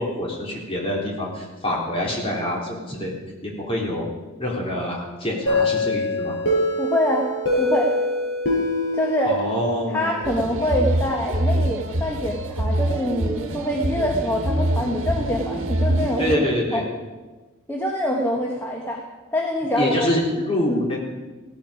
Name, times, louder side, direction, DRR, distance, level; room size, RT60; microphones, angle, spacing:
voice 1, 0.0-3.1 3.4-4.1 4.4-6.4 9.3-10.1 16.2-16.8 19.8-21.0, left 1 dB, 25° left, -3 dB, 3.6 m, -25 dB
sound 1, 5.5-10.1, left 1 dB, 60° left, 5.4 m, -24 dB
voice 2, 6.8-7.3 7.6-7.9 8.9-9.4 9.9-16.4 16.7-16.8 17.7-19.0 19.3-20.1 20.7-20.9, left 1 dB, 10° left, -1 dB, 1.3 m, -24 dB
sound 2, 10.2-16.4, right 1 dB, 70° right, 1.4 m, -25 dB
16.5 x 14.0 x 5.1 m, 1.2 s
head